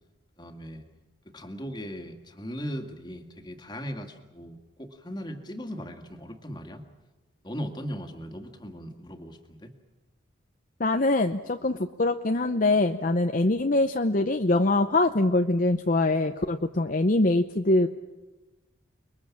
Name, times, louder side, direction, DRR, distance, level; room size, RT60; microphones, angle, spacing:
voice 1, 0.4-0.8 1.3-6.8 7.4-9.7, equal, 20° left, 5 dB, 2.1 m, -38 dB
voice 2, 10.8-17.9, left 2 dB, 40° left, 7 dB, 0.7 m, -23 dB
30.0 x 21.5 x 7.3 m, 1.1 s
head